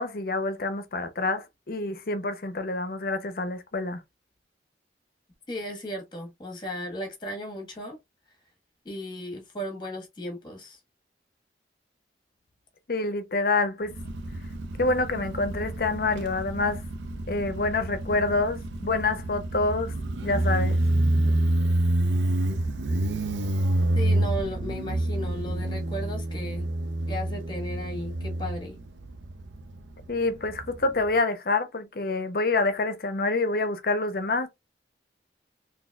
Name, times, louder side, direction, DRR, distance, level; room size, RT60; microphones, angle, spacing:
voice 1, 0.0-4.0 12.9-14.0 14.8-16.8 17.3-19.9 20.2-20.8 30.1-34.5, left 3 dB, 55° left, 0.6 m, -27 dB
voice 2, 5.5-8.0 8.8-10.8 23.9-26.7 27.1-28.8, equal, 25° left, 1.3 m, -35 dB
Motorcycle, 13.9-31.1, right 1 dB, 85° right, 0.5 m, -28 dB
4.0 x 2.7 x 2.3 m
head